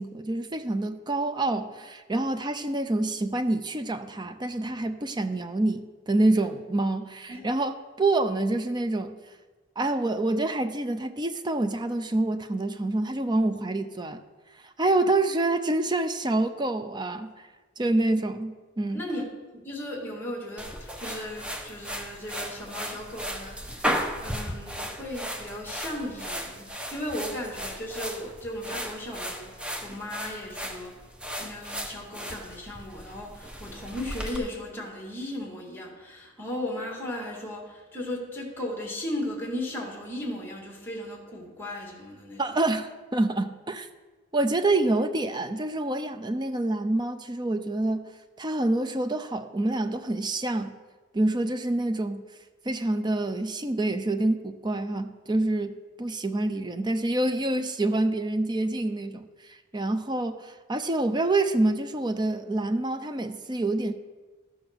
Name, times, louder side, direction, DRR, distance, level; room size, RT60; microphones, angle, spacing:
voice 1, 0.0-9.2 9.8-14.2 14.6-17.5 17.8-19.0 42.4-43.9 44.3-48.1 48.4-50.7 51.1-52.2 52.6-63.9, right 2 dB, 20° right, 9 dB, 0.6 m, -27 dB
voice 2, 18.9-19.2 19.5-23.9 24.2-30.9 31.4-42.6, left 1 dB, 10° left, -1 dB, 2.4 m, -36 dB
sound 1, 20.6-34.4, equal, 5° right, 1.0 m, -35 dB
13.0 x 6.9 x 6.2 m, 1.3 s
head